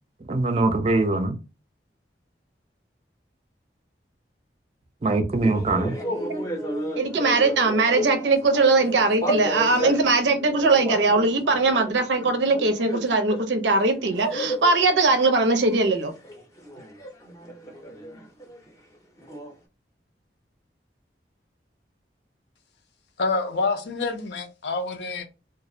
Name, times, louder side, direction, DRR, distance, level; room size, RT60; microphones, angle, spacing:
voice 1, 0.3-1.4 5.0-5.9, right 2 dB, 35° right, 0.4 m, -22 dB
sound 1, 5.4-13.4 13.7-18.7 19.2-19.5, right 1 dB, 20° left, 0.5 m, -33 dB
voice 2, 7.0-16.1, right 3 dB, 85° right, 0.5 m, -20 dB
voice 3, 23.2-25.2, left 3 dB, 75° left, 0.5 m, -27 dB
2.3 x 2.0 x 2.6 m
head